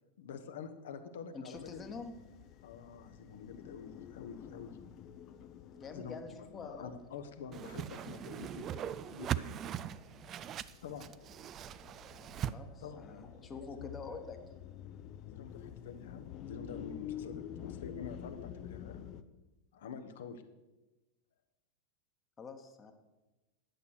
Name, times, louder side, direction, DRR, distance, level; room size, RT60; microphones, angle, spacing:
voice 1, 0.2-2.0 2.6-4.8 5.9-9.5 10.8-11.1 12.8-14.2 15.2-19.0 19.7-20.4, left 6 dB, 60° left, 8 dB, 1.1 m, -47 dB
voice 2, 1.3-2.1 5.7-6.9 12.4-14.4 22.4-22.9, left 4 dB, 20° left, 6 dB, 1.3 m, -46 dB
sound 1, 1.5-19.2, left 10 dB, 35° left, 0.6 m, -50 dB
Whoosh swoosh swish, 7.5-12.5, right 10 dB, 30° right, 0.4 m, -40 dB
11.5 x 8.3 x 6.4 m, 1.1 s
figure-of-eight pair, 90°, 0 cm